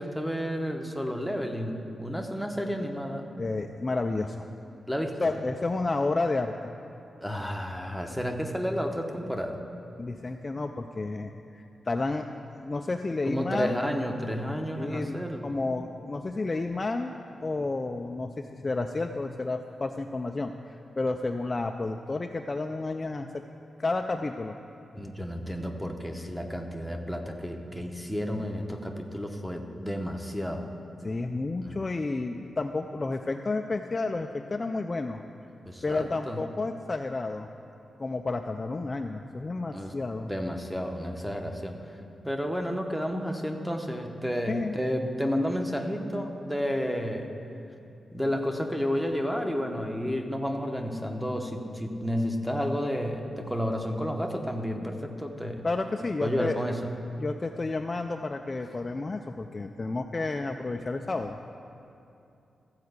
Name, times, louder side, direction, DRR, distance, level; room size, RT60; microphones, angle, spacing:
voice 1, 0.0-3.3 4.9-5.2 7.2-9.6 13.3-15.5 24.9-30.7 31.6-31.8 35.7-36.4 39.7-39.9 40.3-41.8 42.2-47.3 48.1-55.6 56.2-56.8, equal, ahead, 3 dB, 0.8 m, -31 dB
voice 2, 3.4-4.5 5.2-6.6 10.0-12.3 12.6-13.8 14.8-15.2 15.4-17.1 17.4-23.4 23.8-24.6 31.0-35.2 35.8-37.5 38.0-40.3 44.5-44.8 55.6-56.6 57.1-61.5, left 3 dB, 25° left, 5 dB, 0.3 m, -31 dB
14.0 x 4.7 x 8.0 m, 2.6 s
wide cardioid pair, 150°, 0 cm